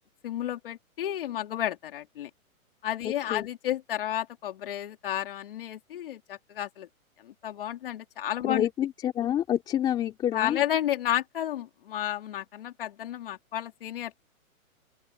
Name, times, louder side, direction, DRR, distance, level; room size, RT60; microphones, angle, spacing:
voice 1, 0.2-2.3 2.8-6.9 7.2-8.7 10.3-14.1, left 12 dB, 40° left, 3.0 m, -32 dB
voice 2, 3.0-3.5 8.4-10.6, left 11 dB, 10° left, 2.7 m, -28 dB
open air
hypercardioid pair, 175°, 42 cm